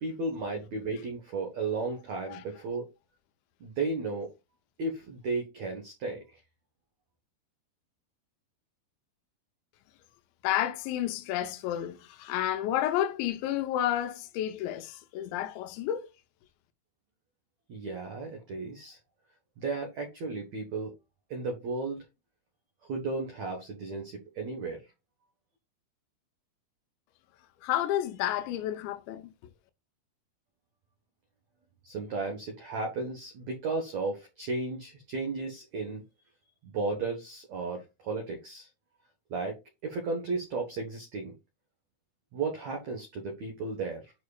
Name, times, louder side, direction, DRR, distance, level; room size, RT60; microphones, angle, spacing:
voice 1, 0.0-2.9 3.6-4.3 4.8-6.4 17.7-19.0 19.6-20.9 21.3-22.0 22.8-24.8 31.8-36.0 36.6-38.7 39.3-41.3 42.3-44.1, right 3 dB, 70° right, 1.7 m, -34 dB
voice 2, 10.4-16.1 27.6-29.3, left 12 dB, 85° left, 3.1 m, -31 dB
9.0 x 5.2 x 2.4 m
omnidirectional pair, 5.1 m